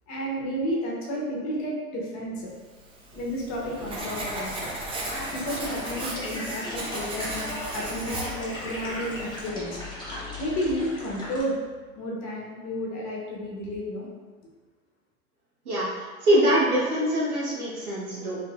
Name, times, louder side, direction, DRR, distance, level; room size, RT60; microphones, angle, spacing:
voice 1, 0.1-2.5 3.1-4.7 5.3-9.8 10.4-11.5 12.0-14.1, equal, 40° left, -3 dB, 1.0 m, -32 dB
Writing, 2.8-9.5, right 2 dB, 15° right, 0.4 m, -36 dB
sound 1, 3.5-11.4, left 1 dB, 10° left, 0.9 m, -37 dB
voice 2, 15.6-18.4, equal, 80° right, -7 dB, 1.4 m, -24 dB
3.2 x 3.2 x 2.3 m, 1.4 s
hypercardioid pair, 85°, 44 cm